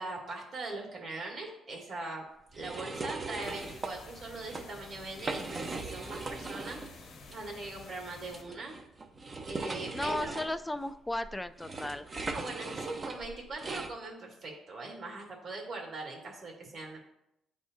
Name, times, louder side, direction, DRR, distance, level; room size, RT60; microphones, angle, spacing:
voice 1, 0.0-2.2 2.5-8.7 9.5-10.3 11.9-17.0, right 2 dB, 55° right, 0 dB, 1.9 m, -41 dB
sound 1, 2.5-3.9 4.3-4.6 5.1-6.9 7.3-7.4 8.3-13.9, right 3 dB, 30° right, 0.6 m, -39 dB
sound 2, 3.4-8.4, left 3 dB, 70° left, 1.2 m, -50 dB
voice 2, 9.9-12.1, left 1 dB, 10° left, 11 dB, 0.3 m, -35 dB
10.0 x 3.5 x 2.7 m, 0.82 s
cardioid pair, 90°, 0 cm